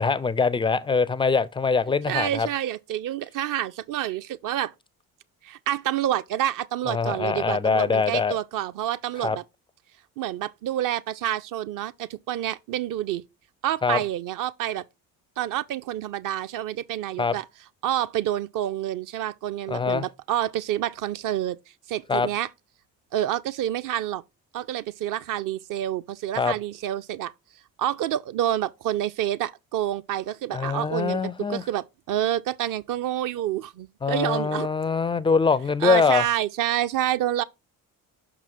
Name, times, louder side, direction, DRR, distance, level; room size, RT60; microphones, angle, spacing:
voice 1, 0.0-2.5 6.9-8.4 9.2-9.4 13.8-14.0 17.2-17.3 19.7-20.0 22.1-22.3 26.4-26.5 30.5-31.6 34.0-36.2, left 5 dB, 10° left, 0.3 m, -23 dB
voice 2, 2.1-4.7 5.4-9.4 10.2-13.2 13.6-14.8 15.4-17.4 17.8-21.6 21.9-22.5 23.1-24.2 24.5-27.3 27.8-31.2 31.5-34.7 35.8-37.4, right 12 dB, 45° right, 0.5 m, -28 dB
5.9 x 5.0 x 4.3 m
figure-of-eight pair, 45°, 46 cm